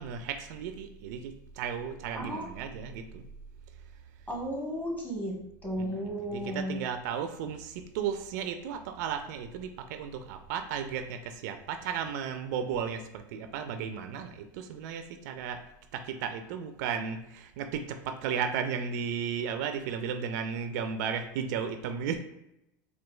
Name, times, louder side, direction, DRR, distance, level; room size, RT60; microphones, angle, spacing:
voice 1, 0.0-3.2 5.7-15.6 15.9-22.2, right 7 dB, 70° right, 7 dB, 0.4 m, -34 dB
voice 2, 2.1-2.5 4.3-6.8, equal, 15° left, -2 dB, 1.2 m, -34 dB
4.3 x 2.3 x 2.2 m, 0.84 s
hypercardioid pair, 95°, 10 cm